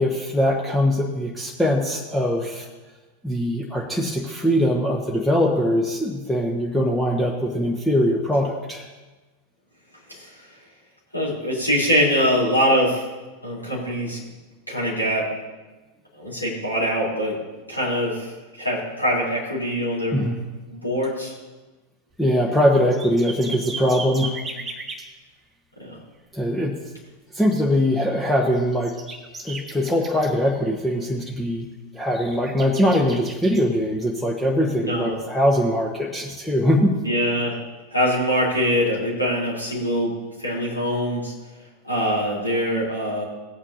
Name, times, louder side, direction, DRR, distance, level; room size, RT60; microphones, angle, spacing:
voice 1, 0.0-2.7 3.2-8.9 20.1-20.4 22.2-24.4 26.3-26.8 27.3-28.9 29.4-31.7 31.9-37.0, equal, 5° left, -1 dB, 1.1 m, -22 dB
voice 2, 11.1-13.0 13.4-14.2 14.7-15.2 16.2-17.3 17.7-20.2 20.7-21.3 25.8-26.0 34.8-35.1 37.0-37.5 37.9-40.1 40.4-41.3 41.8-43.2, equal, 90° left, -7 dB, 3.5 m, -23 dB
sound 1, 22.1-22.2 22.5-25.1 28.0-30.9 31.3-31.5 32.0-33.7 35.1-35.2, right 3 dB, 15° right, 1.4 m, -37 dB
17.5 x 8.7 x 2.8 m, 1.2 s
figure-of-eight pair, 90°, 0 cm